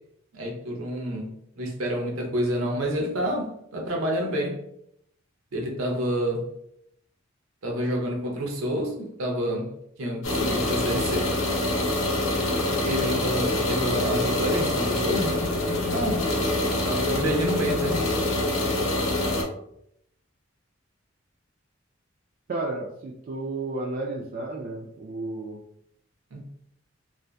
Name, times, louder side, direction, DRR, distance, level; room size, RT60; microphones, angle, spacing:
voice 1, 0.3-1.3 1.6-4.6 5.5-6.5 7.6-9.7 10.0-11.3 12.7-15.4 15.7-16.3 16.9-18.1 26.3-26.4, equal, 85° right, 0.7 m, -28 dB
sound 1, 10.2-19.4, left 1 dB, 75° left, 0.7 m, -25 dB
voice 2, 22.5-25.6, right 2 dB, 45° right, 0.3 m, -32 dB
2.6 x 2.4 x 2.2 m
head